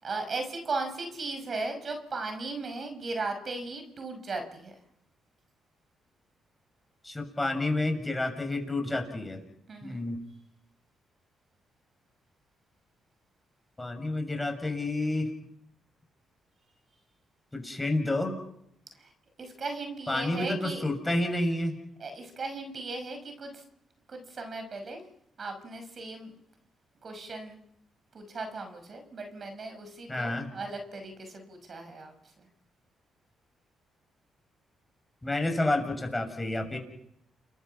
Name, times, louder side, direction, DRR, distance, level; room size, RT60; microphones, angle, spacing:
voice 1, 0.0-4.8 9.7-10.0 19.0-19.1 19.4-20.8 22.0-23.6 24.1-25.0 25.4-26.4 27.0-27.6 28.1-32.5, right 3 dB, 50° right, 6 dB, 5.7 m, -37 dB
voice 2, 7.0-9.4 9.8-10.2 13.8-15.3 17.5-18.3 20.1-21.7 30.1-30.5 35.2-36.8, left 2 dB, 15° left, 5 dB, 7.0 m, -29 dB
29.5 x 22.0 x 5.8 m, 0.75 s
supercardioid pair, 65°, 0 cm